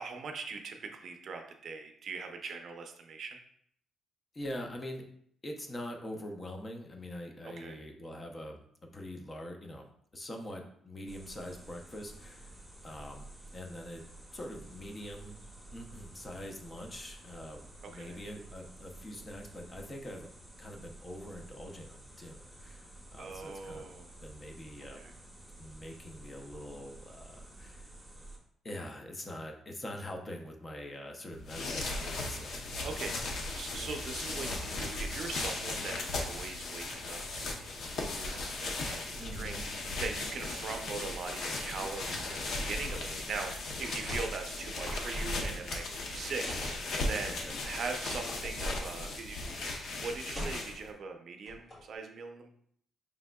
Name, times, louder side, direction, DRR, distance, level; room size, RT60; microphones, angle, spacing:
voice 1, 0.0-3.4 7.4-7.8 17.9-18.2 23.2-24.1 24.9-25.1 32.8-47.4 47.6-49.5 49.9-52.5, right 4 dB, 60° right, 4 dB, 0.5 m, -41 dB
voice 2, 4.3-5.0 5.4-8.6 8.9-9.9 10.1-12.5 12.8-13.3 13.5-14.0 14.3-15.3 15.7-20.3 20.6-23.9 24.2-25.1 25.6-27.9 28.6-32.6 39.2-39.6 47.3-47.6, left 1 dB, 30° left, 2 dB, 0.7 m, -44 dB
sound 1, 11.1-28.4, right 1 dB, ahead, 1.0 m, -52 dB
sound 2, 31.3-50.9, left 2 dB, 65° left, 0.7 m, -37 dB
school bus truck int roof hatch mess with, 44.0-44.4 44.6-45.7 46.4-46.8 48.3-48.4 48.7-48.9 49.4-49.6 50.3-50.9 51.5-52.0, equal, 50° left, 1.6 m, -40 dB
5.0 x 3.5 x 2.2 m, 0.66 s
cardioid pair, 90°, 0 cm